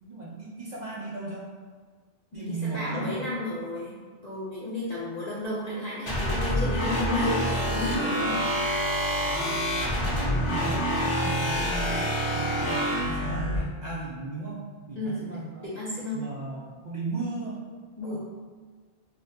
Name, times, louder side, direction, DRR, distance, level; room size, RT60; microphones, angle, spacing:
voice 1, 0.0-1.5 2.3-3.2 9.2-9.6 10.1-15.7 16.1-17.6 18.0-18.2, right 3 dB, 55° right, -5 dB, 0.5 m, -36 dB
voice 2, 2.3-4.0 4.2-8.4 9.9-10.2 15.0-15.3 15.6-16.2 18.0-18.2, left 2 dB, 45° left, -9 dB, 0.7 m, -32 dB
sound 1, 6.1-13.6, equal, 25° left, 1.3 m, -27 dB
5.1 x 2.1 x 2.8 m, 1.5 s
omnidirectional pair, 1.2 m